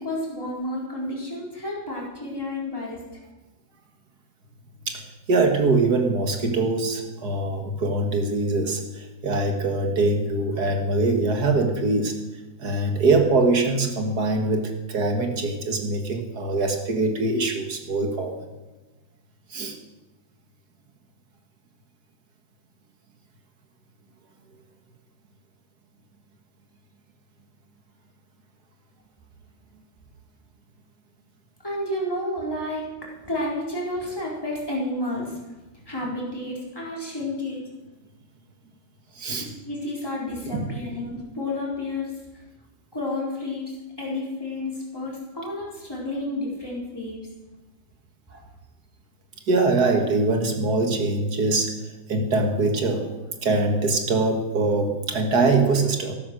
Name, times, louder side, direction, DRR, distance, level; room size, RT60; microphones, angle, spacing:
voice 1, 0.0-3.0 31.6-32.9 33.2-35.4 35.9-37.6 39.4-42.1 42.9-43.7 44.0-47.2, left 1 dB, 10° left, -5 dB, 4.3 m, -30 dB
voice 2, 4.9-12.1 12.6-18.5 19.5-19.8 39.2-39.5 40.5-40.7 48.3-48.4 49.5-51.7 52.1-53.1 53.4-56.1, right 3 dB, 55° right, 4 dB, 2.2 m, -23 dB
14.0 x 12.0 x 6.3 m, 1.1 s
omnidirectional pair, 2.1 m